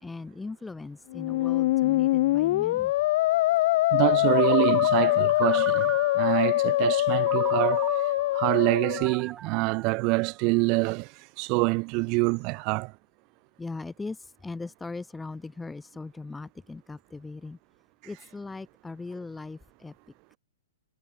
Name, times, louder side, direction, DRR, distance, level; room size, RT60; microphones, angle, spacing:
voice 1, 0.0-2.9 13.6-17.6 18.0-19.9, left 3 dB, 10° left, 1.5 m, -39 dB
Musical instrument, 1.1-9.2, left 17 dB, 50° left, 0.6 m, -24 dB
voice 2, 3.9-7.8 8.3-11.1 11.4-12.9, right 31 dB, 40° right, 3.6 m, -26 dB
Ringtone, 4.3-6.4 7.2-10.6, right 9 dB, 20° right, 1.5 m, -38 dB
hypercardioid pair, 120°, 0 cm